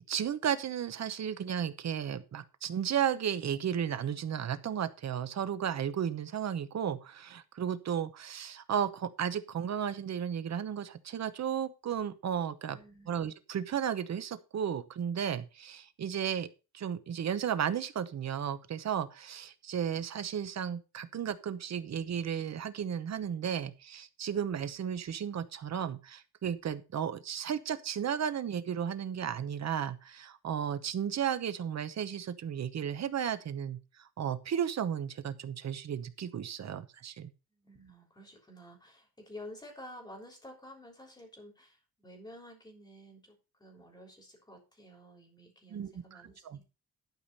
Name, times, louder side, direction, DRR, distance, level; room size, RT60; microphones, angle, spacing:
voice 1, 0.1-12.8 13.1-16.5 16.7-33.8 34.2-37.3 45.7-46.6, right 8 dB, 45° right, 12 dB, 0.9 m, -34 dB
voice 2, 12.7-13.2 37.5-46.7, left 1 dB, 10° left, 1 dB, 3.5 m, -51 dB
12.0 x 5.0 x 5.4 m, 0.31 s
wide cardioid pair, 165°, 37 cm